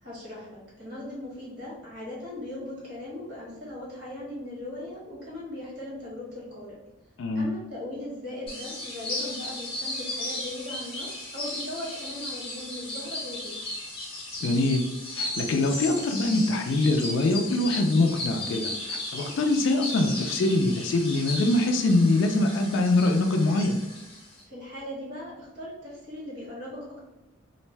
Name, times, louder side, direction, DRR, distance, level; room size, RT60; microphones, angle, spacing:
voice 1, 0.0-6.8 7.3-13.7 24.4-27.0, left 1 dB, 55° right, -6 dB, 1.2 m, -39 dB
voice 2, 7.2-7.5 14.4-14.9 15.1-23.8, left 2 dB, 70° left, 4 dB, 0.3 m, -24 dB
sound 1, 8.5-24.4, left 2 dB, 30° left, 0.7 m, -36 dB
2.5 x 2.1 x 3.2 m, 0.98 s
head